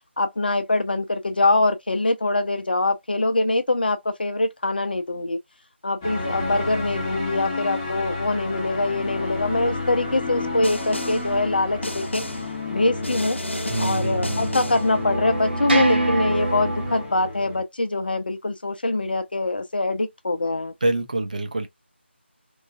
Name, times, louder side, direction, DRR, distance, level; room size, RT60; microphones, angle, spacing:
voice 1, 0.2-5.4 5.8-12.2 12.7-13.4 13.8-20.7, left 2 dB, 50° left, 0.5 m, -23 dB
sound 1, 6.0-17.6, left 2 dB, 15° left, 0.7 m, -31 dB
Snare drum, 10.6-11.3 11.8-12.5 13.0-14.9, left 1 dB, 75° left, 0.9 m, -33 dB
sound 2, 13.5-17.0, right 2 dB, 55° right, 1.0 m, -27 dB
voice 2, 13.7-14.5 20.8-21.7, right 2 dB, 40° right, 0.5 m, -26 dB
3.0 x 2.2 x 2.3 m
figure-of-eight pair, 165°, 7 cm